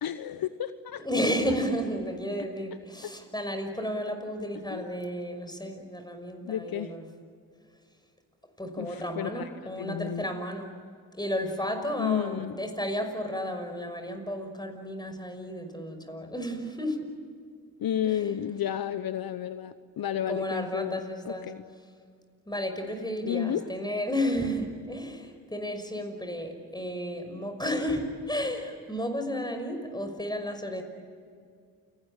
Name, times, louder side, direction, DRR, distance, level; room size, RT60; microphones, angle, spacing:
voice 1, 0.0-1.2 3.0-3.1 4.7-4.9 6.4-6.9 8.8-9.5 9.8-10.3 12.0-12.6 17.8-21.0 21.2-21.6 23.2-23.6, left 10 dB, 65° left, 12 dB, 1.0 m, -32 dB
voice 2, 1.0-7.1 8.6-10.8 11.1-17.2 18.0-18.3 20.1-21.5 22.5-30.8, equal, 10° left, 7 dB, 5.9 m, -32 dB
29.0 x 18.5 x 8.9 m, 2.2 s
supercardioid pair, 50°, 39 cm